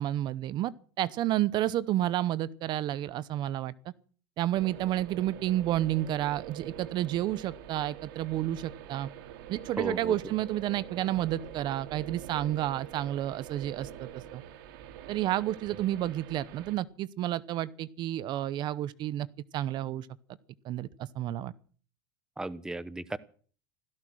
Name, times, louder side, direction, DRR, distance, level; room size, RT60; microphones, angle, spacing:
voice 1, 0.0-3.7 4.4-9.1 9.5-14.4 15.1-19.3 19.5-20.1 20.6-21.5, right 13 dB, 40° right, 18 dB, 0.8 m, -30 dB
sound 1, 4.5-16.8, right 10 dB, 65° right, 2.3 m, -45 dB
voice 2, 9.8-10.2 22.4-23.2, right 2 dB, 5° right, 16 dB, 0.8 m, -35 dB
16.5 x 14.0 x 6.3 m, 0.43 s
supercardioid pair, 135°, 12 cm